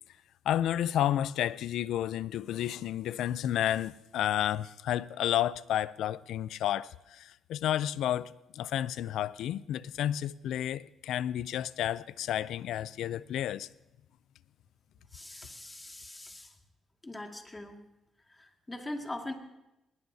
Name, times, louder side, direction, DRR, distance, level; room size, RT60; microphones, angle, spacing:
voice 1, 0.5-13.7, left 11 dB, 80° left, 0.4 m, -31 dB
voice 2, 15.1-16.5 17.0-17.8 18.3-19.3, left 1 dB, 15° left, 2.1 m, -41 dB
20.5 x 19.0 x 2.8 m
cardioid pair, 90°, 0 cm